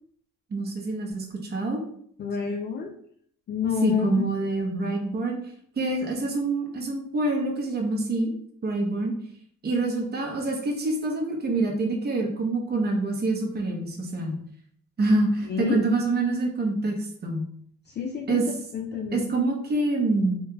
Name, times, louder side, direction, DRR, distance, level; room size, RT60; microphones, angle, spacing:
voice 1, 0.5-1.8 3.8-5.4 5.8-8.3 8.6-9.1 9.6-14.4 15.0-17.5 18.3-18.4 19.1-20.4, right 2 dB, 35° right, 1 dB, 0.8 m, -26 dB
voice 2, 2.2-2.9 3.5-4.2 15.5-15.8 17.9-19.3, left 6 dB, 35° left, 3 dB, 0.4 m, -28 dB
3.7 x 2.3 x 2.8 m, 0.64 s
cardioid pair, 90°, 30 cm